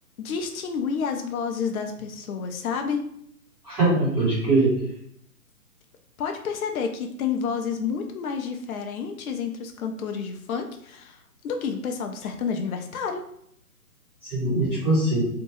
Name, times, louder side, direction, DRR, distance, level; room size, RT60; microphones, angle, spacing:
voice 1, 0.2-3.1 6.2-11.2 11.4-13.3, left 6 dB, 65° left, 4 dB, 0.5 m, -29 dB
voice 2, 3.6-4.7 14.3-15.2, right 2 dB, 15° right, -15 dB, 1.2 m, -21 dB
2.7 x 2.2 x 2.9 m, 0.70 s
figure-of-eight pair, 145°, 45 cm